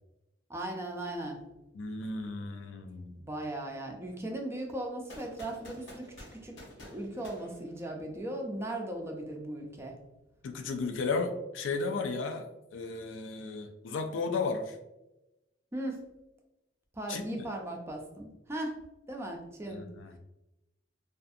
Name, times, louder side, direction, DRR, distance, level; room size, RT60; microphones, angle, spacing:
voice 1, 0.5-1.4 3.2-6.6 6.9-10.0 15.7-16.0 16.9-18.8 19.1-19.8, right 1 dB, 15° right, 1 dB, 0.4 m, -38 dB
voice 2, 1.7-3.2 10.4-14.8 17.1-17.5 19.7-20.2, left 4 dB, 85° left, 7 dB, 0.4 m, -34 dB
sound 1, 5.1-8.3, left 1 dB, 70° left, 0.8 m, -50 dB
2.5 x 2.4 x 2.5 m, 0.94 s
head